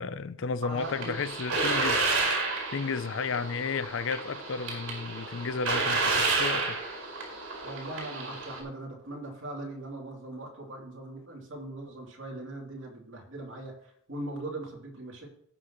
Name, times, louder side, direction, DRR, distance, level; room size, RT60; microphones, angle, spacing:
voice 1, 0.0-6.8 7.5-7.6, left 5 dB, 60° left, 0.5 m, -33 dB
voice 2, 0.6-1.2 7.6-13.7 14.1-15.3, right 1 dB, 60° right, 3.1 m, -40 dB
sound 1, 0.8-8.6, right 3 dB, 75° right, 4.4 m, -30 dB
18.0 x 6.1 x 3.1 m
head